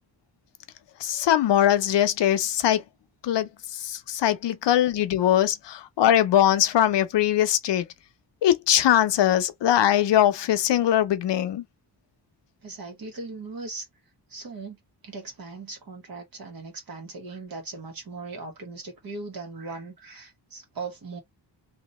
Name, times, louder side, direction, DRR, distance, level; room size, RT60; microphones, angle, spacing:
voice 1, 1.0-2.8 3.2-7.9 8.4-11.6, left 11 dB, 75° left, 0.7 m, -21 dB
voice 2, 12.6-13.9 14.3-14.8 15.0-21.2, right 3 dB, 55° right, 1.6 m, -39 dB
3.0 x 2.8 x 3.0 m
wide cardioid pair, 150°, 43 cm